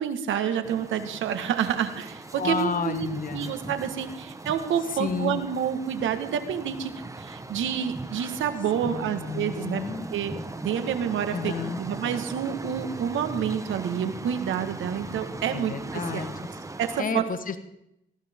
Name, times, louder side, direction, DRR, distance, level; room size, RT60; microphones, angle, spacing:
voice 1, 0.0-3.1 3.3-6.9 7.2-9.8 10.1-10.3 10.6-11.5 11.8-16.3 16.8-17.2, right 8 dB, 75° right, 8 dB, 1.6 m, -28 dB
sound 1, 0.6-17.0, right 2 dB, 15° right, 1.2 m, -39 dB
voice 2, 2.4-3.6 4.9-5.4 8.8-10.1 11.3-11.8 15.5-16.3 17.0-17.6, left 5 dB, 45° left, 9 dB, 1.4 m, -31 dB
19.5 x 15.0 x 3.7 m, 0.81 s
cardioid pair, 90°, 20 cm